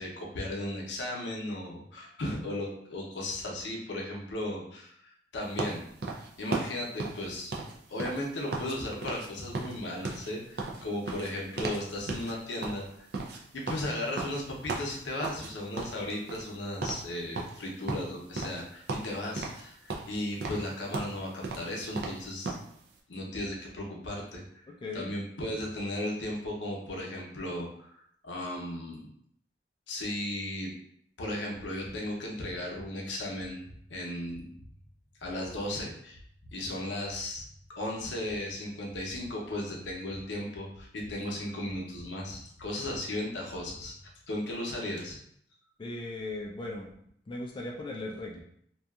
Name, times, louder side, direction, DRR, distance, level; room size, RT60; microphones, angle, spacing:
voice 1, 0.0-5.8 6.4-7.6 7.9-13.1 13.5-22.6 23.1-24.4 24.9-29.0 29.9-30.7 31.2-33.6 33.9-34.5 35.2-36.2 36.5-37.4 37.8-43.9 44.3-45.2, left 1 dB, 85° left, -1 dB, 0.6 m, -36 dB
sound 1, 5.6-8.8 9.0-9.3 9.5-11.8 12.1-12.3 12.6-15.5 15.8-16.6 16.8-17.1 17.3-18.6 18.9-19.6 19.9-22.7, right 3 dB, 60° right, 0.4 m, -36 dB
voice 2, 24.8-25.1 45.8-46.9 47.3-48.4, left 2 dB, 30° left, -1 dB, 0.3 m, -37 dB
sound 2, 31.5-44.2, equal, 45° left, 0.7 m, -54 dB
2.7 x 2.3 x 2.3 m, 0.68 s
head